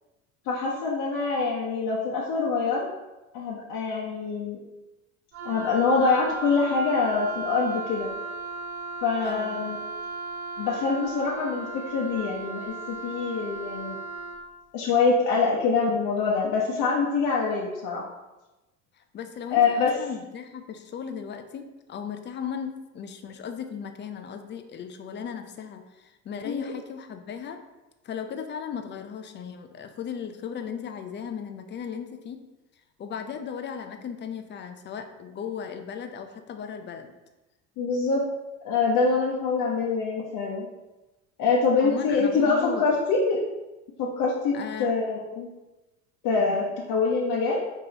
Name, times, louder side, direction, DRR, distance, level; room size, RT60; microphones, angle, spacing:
voice 1, 0.4-2.9 3.3-4.6 5.4-8.1 9.0-9.8 10.6-14.0 14.7-18.0 19.5-19.9 26.4-26.7 37.8-38.2 38.6-40.7 41.4-43.4 44.0-45.5 46.2-47.6, left 4 dB, 50° left, -4 dB, 0.9 m, -25 dB
Wind instrument woodwind instrument, 5.3-14.4, right 3 dB, 30° right, 1.0 m, -36 dB
voice 2, 9.2-9.6 19.1-27.6 28.0-32.5 33.0-37.1 41.8-42.8 44.5-44.9 46.3-46.6, left 7 dB, 25° left, 7 dB, 0.5 m, -36 dB
5.0 x 3.5 x 2.9 m, 1.0 s
hypercardioid pair, 70°, 41 cm